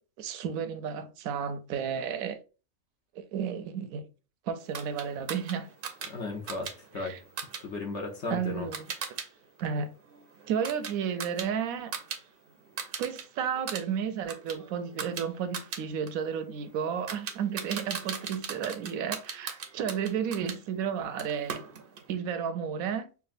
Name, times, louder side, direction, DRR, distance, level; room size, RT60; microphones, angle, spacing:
voice 1, 0.2-2.4 3.2-4.1 4.5-5.7 7.0-7.2 8.3-8.9 9.6-9.9 10.5-11.9 13.0-21.6 22.1-23.1, right 7 dB, 75° right, 1.0 m, -32 dB
Toy Gun Trigger, 4.7-9.3 9.6-12.2 12.5-13.2 13.5-20.6 21.2-22.1, right 6 dB, 55° right, 0.6 m, -39 dB
voice 2, 6.1-7.2 7.6-8.7, left 3 dB, 60° left, 1.0 m, -35 dB
5.7 x 2.4 x 2.5 m
omnidirectional pair, 1.5 m